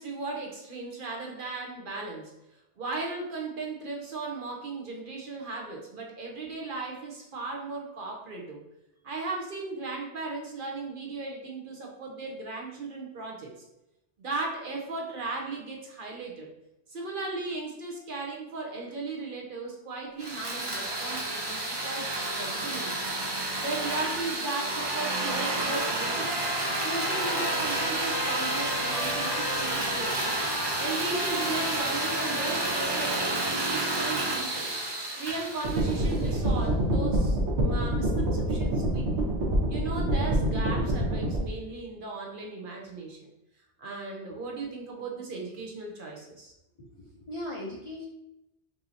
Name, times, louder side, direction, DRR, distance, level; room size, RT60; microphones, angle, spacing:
voice 1, 0.0-2.3 2.8-8.6 9.0-13.5 14.2-16.5 16.9-23.1 23.6-26.4 26.7-30.3 30.8-34.7 35.2-39.3 39.7-43.3 43.8-46.5, right 3 dB, 55° right, 0 dB, 0.8 m, -36 dB
sound 1, 20.2-36.4, right 2 dB, 30° right, 0.6 m, -30 dB
Trumpet, 25.2-33.3, left 4 dB, 75° left, 1.0 m, -39 dB
sound 2, 35.6-41.4, right 1 dB, 80° right, 1.2 m, -26 dB
voice 2, 46.8-48.1, left 1 dB, 40° left, -4 dB, 0.5 m, -39 dB
5.5 x 2.8 x 2.7 m, 0.88 s
omnidirectional pair, 1.1 m